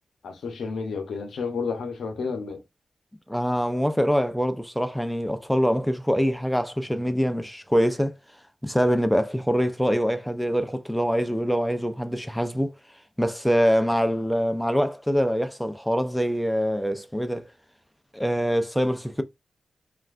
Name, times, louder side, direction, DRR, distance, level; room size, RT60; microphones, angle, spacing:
voice 1, 0.2-2.6, left 5 dB, 80° left, 0.6 m, -31 dB
voice 2, 3.3-8.2 8.6-12.7 13.2-17.4 18.1-19.2, equal, ahead, 0.4 m, -24 dB
3.3 x 2.4 x 2.4 m
cardioid pair, 70°, 0 cm